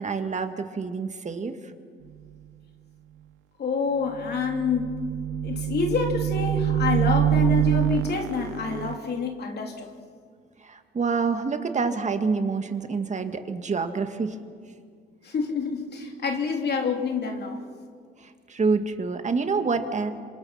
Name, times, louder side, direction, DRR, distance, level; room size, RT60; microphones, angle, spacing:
voice 1, 0.0-1.6 10.6-14.4 18.5-20.1, right 4 dB, 35° right, 7 dB, 2.0 m, -27 dB
voice 2, 3.6-5.0 5.4-9.9 15.2-17.6, left 5 dB, 55° left, 2 dB, 3.3 m, -27 dB
sound 1, 4.2-9.0, right 12 dB, 75° right, 1.0 m, -25 dB
27.5 x 26.0 x 5.8 m, 2.1 s
cardioid pair, 90°, 20 cm